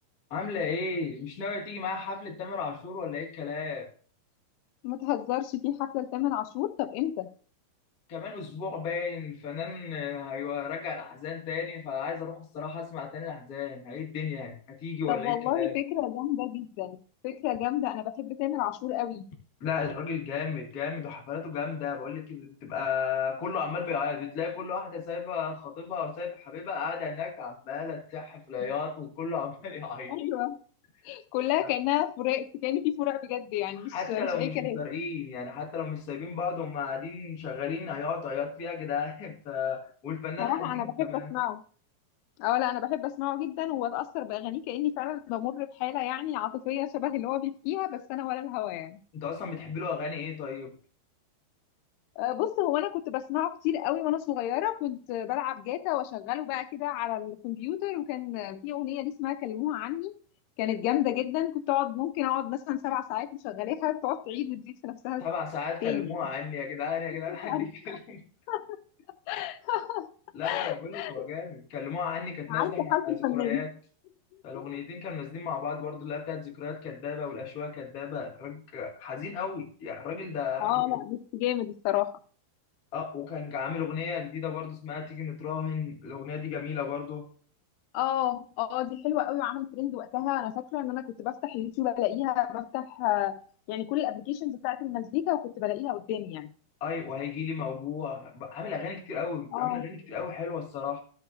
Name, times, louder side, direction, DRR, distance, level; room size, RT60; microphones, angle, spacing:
voice 1, 0.3-3.9 8.1-15.8 19.6-30.1 31.6-31.7 33.8-41.3 49.1-50.8 65.2-68.2 70.3-73.7 74.4-80.8 82.9-87.3 96.8-101.0, left 6 dB, 40° left, 1.3 m, -34 dB
voice 2, 4.8-7.3 15.1-19.3 30.1-30.6 31.1-34.8 40.4-41.6 42.4-49.0 52.2-60.1 60.6-65.3 65.8-66.2 67.4-67.7 68.5-68.8 69.3-70.1 70.4-71.3 72.5-73.6 74.5-74.8 80.6-82.1 87.9-93.4 93.7-96.5 99.5-99.9, left 14 dB, 85° left, 2.7 m, -30 dB
13.5 x 7.7 x 2.5 m
omnidirectional pair, 4.5 m